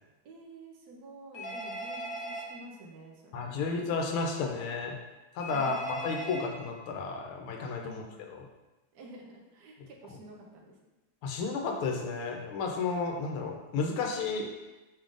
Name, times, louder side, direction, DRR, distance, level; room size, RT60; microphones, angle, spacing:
voice 1, 0.2-3.8 5.5-6.3 7.8-8.2 8.9-10.7, right 1 dB, 65° right, 0 dB, 1.2 m, -50 dB
Telephone, 1.3-2.5 5.4-6.5, right 1 dB, 70° left, 1.7 m, -38 dB
voice 2, 3.3-4.9 5.3-8.4 11.2-14.5, left 4 dB, 85° left, 1 dB, 1.6 m, -32 dB
5.2 x 3.6 x 2.5 m, 1.1 s
omnidirectional pair, 2.3 m